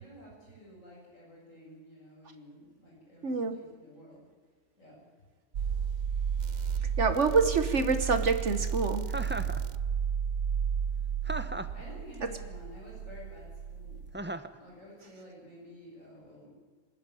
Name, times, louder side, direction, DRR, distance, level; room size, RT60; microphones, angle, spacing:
voice 1, 0.0-4.3 4.8-5.0 11.7-14.0 14.5-16.5, equal, 75° left, -4 dB, 7.1 m, -51 dB
voice 2, 3.2-3.6 7.0-9.1, right 4 dB, 65° right, 9 dB, 1.5 m, -26 dB
sound 1, 5.5-14.2, right 7 dB, 85° right, 1.2 m, -33 dB
Chuckle chortle, 9.1-9.6 11.3-11.8 14.1-14.6, right 1 dB, 10° right, 0.7 m, -36 dB
25.0 x 13.5 x 9.9 m, 1.5 s
omnidirectional pair, 1.4 m